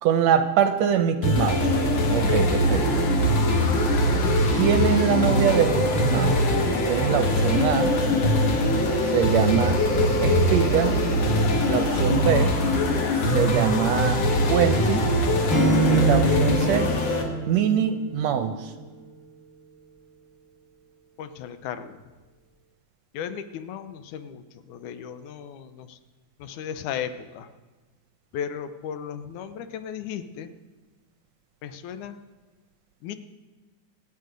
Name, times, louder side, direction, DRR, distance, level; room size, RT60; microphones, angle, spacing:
voice 1, 0.0-1.7 2.1-3.1 4.6-6.4 6.9-8.0 9.1-9.8 10.2-10.9 11.7-12.6 13.3-15.1 15.9-16.9 17.5-18.7, right 9 dB, 75° right, 8 dB, 1.8 m, -23 dB
sound 1, 1.2-17.2, left 1 dB, 60° left, 2.8 m, -22 dB
voice 2, 3.6-4.2 21.2-22.0 23.1-26.0 26.4-27.5 28.3-30.5 31.6-32.2 33.0-33.2, left 8 dB, 80° left, 10 dB, 2.3 m, -36 dB
Acoustic guitar / Strum, 15.5-18.6, right 2 dB, 30° left, 2.3 m, -26 dB
25.5 x 9.4 x 5.1 m, 1.3 s
omnidirectional pair, 3.5 m